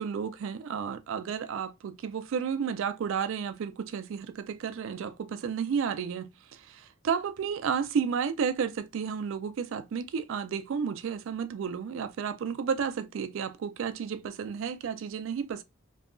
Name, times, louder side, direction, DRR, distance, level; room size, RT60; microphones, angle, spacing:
voice 1, 0.0-15.6, right 6 dB, 60° right, 0.3 m, -32 dB
2.7 x 2.2 x 2.4 m
head